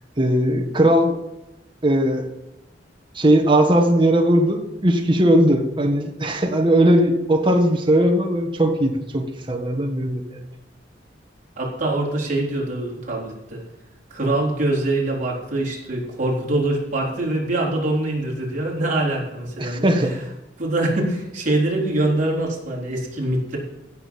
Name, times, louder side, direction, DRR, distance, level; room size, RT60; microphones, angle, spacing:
voice 1, 0.2-1.2 1.8-2.3 3.1-10.4 19.6-20.2, right 1 dB, 25° right, 3 dB, 1.6 m, -18 dB
voice 2, 11.6-13.6 14.1-20.2 20.6-23.6, right 2 dB, 45° right, -4 dB, 4.0 m, -24 dB
16.0 x 6.4 x 5.5 m, 0.96 s
head